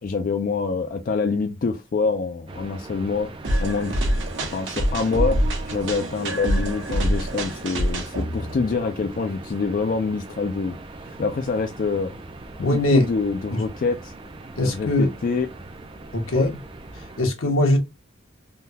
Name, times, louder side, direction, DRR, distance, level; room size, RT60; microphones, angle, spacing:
voice 1, 0.0-3.3 3.6-4.0 4.4-10.8 11.0-12.1 12.6-14.1 14.6-15.5 16.3-16.5, left 4 dB, 45° left, 0.4 m, -26 dB
sound 1, 2.5-17.2, right 2 dB, 25° right, 0.5 m, -40 dB
sound 2, 3.4-8.9, equal, 65° right, 1.1 m, -25 dB
voice 2, 12.6-13.0 13.5-13.6 14.6-15.1 16.1-16.5 17.2-17.8, left 1 dB, 85° left, 1.2 m, -21 dB
3.6 x 2.3 x 2.7 m
head